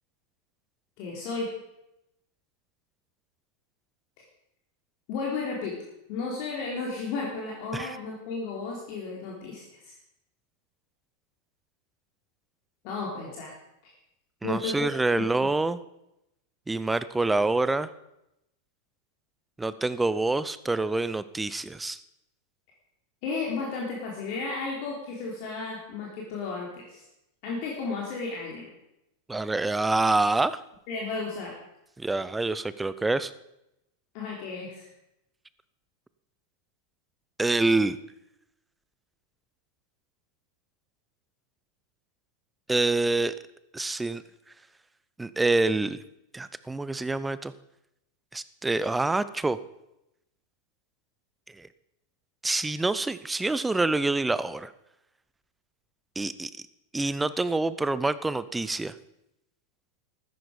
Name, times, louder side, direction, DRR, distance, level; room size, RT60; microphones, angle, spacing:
voice 1, 1.0-1.5 5.1-5.8 6.1-9.9 12.8-13.5 14.4-14.9 15.4-15.5 23.2-27.0 27.4-28.7 30.9-31.6 34.1-34.9, left 4 dB, 45° left, -3 dB, 3.6 m, -33 dB
voice 2, 14.4-15.8 16.7-17.9 19.6-22.0 29.3-30.6 32.0-33.3 37.4-38.0 42.7-43.3 43.7-44.2 45.2-46.0 46.3-47.5 48.3-49.6 51.6-51.7 52.4-54.7 56.2-56.5 56.9-58.9, right 2 dB, 10° right, 16 dB, 0.7 m, -26 dB
14.5 x 14.0 x 5.2 m, 0.87 s
figure-of-eight pair, 90°, 0 cm